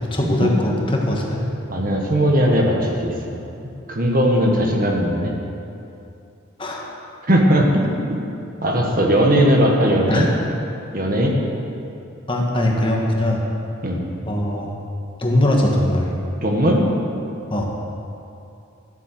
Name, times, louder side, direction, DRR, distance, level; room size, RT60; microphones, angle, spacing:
voice 1, 0.0-1.4 6.6-6.9 10.1-10.3 12.3-13.4 14.2-14.7 15.2-16.1 17.5-17.7, left 1 dB, 25° left, -1 dB, 1.4 m, -20 dB
voice 2, 1.7-3.4 3.9-5.3 7.3-7.8 8.1-8.2 8.6-10.3 10.9-11.4 13.8-14.0 16.4-16.8, equal, 45° right, 0 dB, 1.5 m, -18 dB
12.5 x 7.4 x 7.6 m, 2.7 s
head